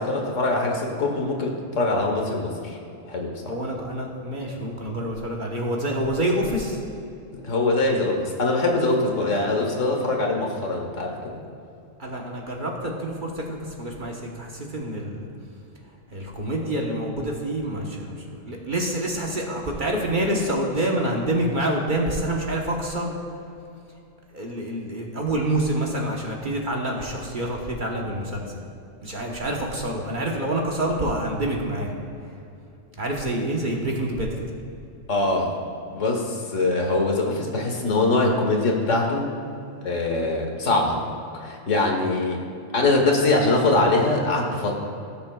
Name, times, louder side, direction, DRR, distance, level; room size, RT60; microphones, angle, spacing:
voice 1, 0.0-2.8 3.1-3.5 7.4-11.4 35.1-35.5 35.9-39.3 39.8-41.0 41.3-42.4 42.7-44.7, left 2 dB, 70° left, 1 dB, 1.5 m, -23 dB
voice 2, 3.4-6.8 12.0-15.3 15.8-23.1 24.3-28.6 29.0-31.9 32.2-32.4 33.0-34.5, right 1 dB, 40° right, -1 dB, 1.2 m, -27 dB
17.5 x 6.9 x 2.3 m, 2.6 s
omnidirectional pair, 1.3 m